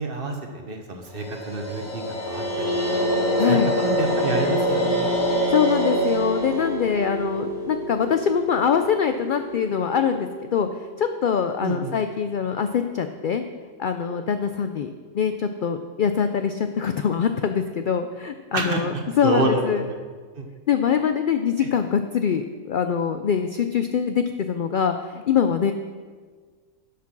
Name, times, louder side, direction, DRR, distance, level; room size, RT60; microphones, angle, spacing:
voice 1, 0.0-3.0 3.5-5.1 11.6-11.9 18.5-20.0 20.4-20.5 21.6-21.7, right 3 dB, 45° right, 3 dB, 1.2 m, -28 dB
sound 1, 1.1-8.3, right 1 dB, 25° left, 2.6 m, -26 dB
sound 2, 2.1-16.0, left 1 dB, ahead, 1.0 m, -32 dB
voice 2, 3.4-3.7 5.3-10.7 11.0-13.4 13.8-14.9 15.1-19.8 20.7-25.7, left 7 dB, 65° left, 8 dB, 0.5 m, -23 dB
10.5 x 6.0 x 6.1 m, 1.5 s
omnidirectional pair, 1.4 m